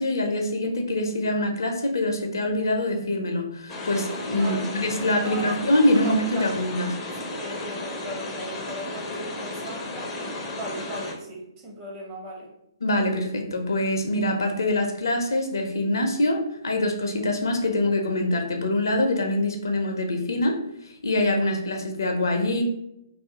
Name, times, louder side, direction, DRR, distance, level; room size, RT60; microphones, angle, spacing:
voice 1, 0.0-6.9 12.8-20.6 20.8-22.6, left 1 dB, 60° left, 4 dB, 0.6 m, -24 dB
sound 1, 3.7-11.1, left 2 dB, 15° left, 0.5 m, -34 dB
voice 2, 4.4-4.7 5.2-6.5 7.4-9.9 10.5-12.5, equal, 25° right, -2 dB, 0.8 m, -37 dB
2.5 x 2.4 x 3.6 m, 0.81 s
figure-of-eight pair, 130°, 2 cm